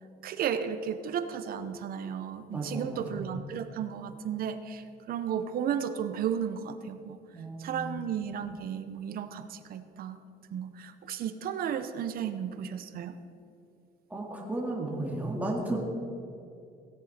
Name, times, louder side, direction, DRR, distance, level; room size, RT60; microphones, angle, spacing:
voice 1, 0.2-7.2 7.6-10.2 10.5-13.2, right 8 dB, 60° right, 10 dB, 0.8 m, -34 dB
voice 2, 2.5-3.3 7.3-7.9 14.1-15.8, right 2 dB, 10° right, -2 dB, 2.1 m, -34 dB
16.5 x 10.5 x 4.3 m, 2.5 s
cardioid pair, 110°, 17 cm